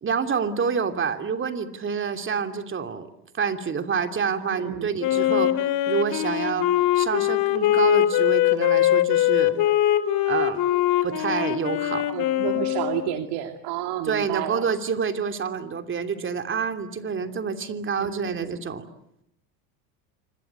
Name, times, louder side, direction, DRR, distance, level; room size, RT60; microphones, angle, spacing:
voice 1, 0.0-3.1 3.3-6.7 6.9-9.5 10.3-10.6 11.0-12.1 14.1-18.8, right 6 dB, 25° right, 7 dB, 2.9 m, -27 dB
voice 2, 4.5-4.9 12.1-14.7 18.0-18.6, right 12 dB, 60° right, 6 dB, 2.4 m, -31 dB
Wind instrument woodwind instrument, 5.0-13.1, left 13 dB, 50° left, 3.2 m, -22 dB
27.5 x 25.5 x 8.3 m, 0.79 s
supercardioid pair, 125°, 45 cm